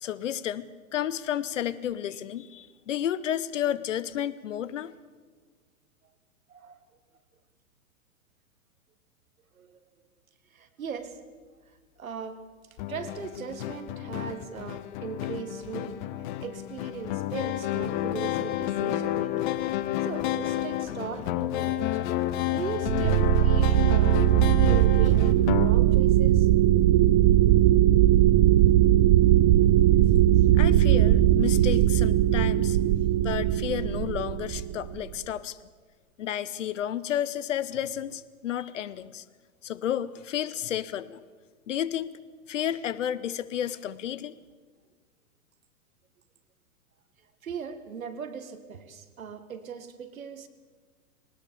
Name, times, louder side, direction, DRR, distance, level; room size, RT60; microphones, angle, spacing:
voice 1, 0.0-4.9 30.5-32.8 33.1-35.6 36.2-39.2 39.6-41.2 41.7-42.2 42.5-44.3, left 10 dB, 55° left, 17 dB, 1.0 m, -31 dB
voice 2, 10.5-11.2 12.0-12.4 12.9-16.0 16.4-19.5 20.0-22.0 22.5-24.4 24.6-26.5 47.4-50.5, right 6 dB, 65° right, 10 dB, 2.0 m, -38 dB
sound 1, 12.8-25.7, left 14 dB, 30° left, 0.8 m, -30 dB
sound 2, 19.6-24.2, left 2 dB, 85° left, 5.8 m, -48 dB
sound 3, 22.9-35.1, right 13 dB, 30° right, 0.6 m, -20 dB
20.5 x 19.0 x 7.1 m, 1.5 s
figure-of-eight pair, 105°, 44 cm